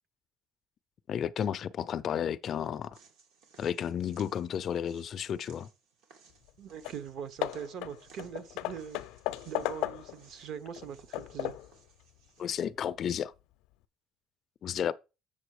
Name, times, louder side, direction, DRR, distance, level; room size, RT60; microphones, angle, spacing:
voice 1, 1.1-3.0 3.6-5.7 12.4-13.3 14.6-14.9, left 9 dB, 35° left, 0.4 m, -32 dB
sound 1, 2.9-12.6, right 5 dB, 80° right, 2.4 m, -62 dB
Hammer / Wood, 6.5-6.6 6.8-7.1 7.4-10.3 10.7-11.8, left 17 dB, 90° left, 0.6 m, -36 dB
voice 2, 6.6-9.0 9.5-11.5, right 8 dB, 50° right, 0.9 m, -42 dB
7.5 x 7.0 x 4.8 m
cardioid pair, 170°, 0 cm